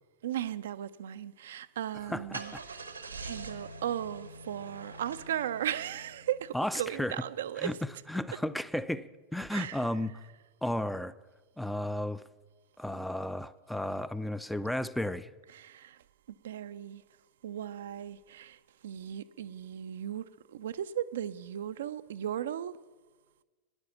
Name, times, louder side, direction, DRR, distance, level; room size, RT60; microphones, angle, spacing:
voice 1, 0.2-2.9 3.2-7.8 9.5-9.8 15.5-17.0 17.4-22.8, right 10 dB, 60° right, 0.4 m, -37 dB
Car / Engine starting, 1.9-6.6, right 3 dB, 80° right, 1.0 m, -45 dB
voice 2, 2.1-2.6 6.5-7.1 7.6-7.7 8.1-10.1 10.6-11.1 11.6-12.2 12.8-15.3, left 1 dB, ahead, 0.5 m, -33 dB
12.5 x 10.0 x 7.1 m
figure-of-eight pair, 90°, 0 cm